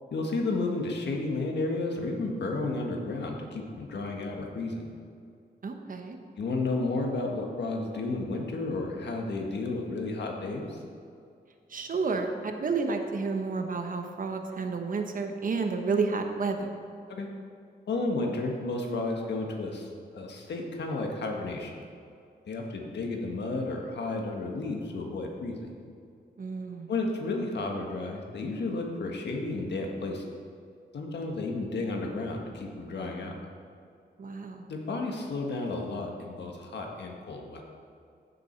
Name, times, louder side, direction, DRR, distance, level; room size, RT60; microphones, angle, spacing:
voice 1, 0.1-4.9 6.4-10.8 17.1-17.3 17.9-21.8 22.5-25.7 26.9-30.3 30.9-33.3 34.7-37.6, left 2 dB, 80° left, 1 dB, 1.6 m, -32 dB
voice 2, 5.6-6.2 11.7-16.7 26.4-26.9 34.2-34.7, right 4 dB, 50° right, 5 dB, 1.1 m, -31 dB
15.0 x 7.1 x 4.5 m, 2.4 s
wide cardioid pair, 125°, 17 cm